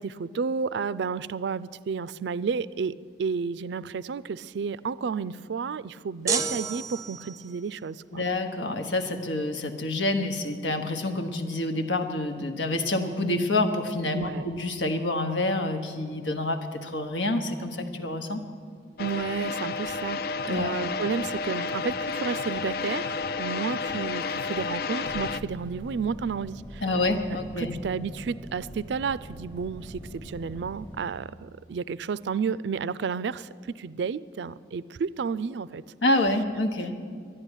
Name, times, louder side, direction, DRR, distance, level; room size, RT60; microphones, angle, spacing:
voice 1, 0.0-8.2 14.1-14.5 19.0-26.8 27.6-35.8, right 5 dB, 70° right, 18 dB, 0.4 m, -31 dB
sound 1, 6.3-7.6, right 5 dB, 20° right, 0.6 m, -30 dB
voice 2, 8.1-18.4 20.5-20.7 26.8-27.7 36.0-36.9, left 2 dB, 85° left, 6 dB, 1.3 m, -27 dB
sound 2, 19.0-25.4, left 4 dB, 55° left, 0.4 m, -31 dB
sound 3, 25.1-31.1, equal, 10° left, 1.0 m, -43 dB
12.0 x 10.5 x 9.9 m, 2.1 s
head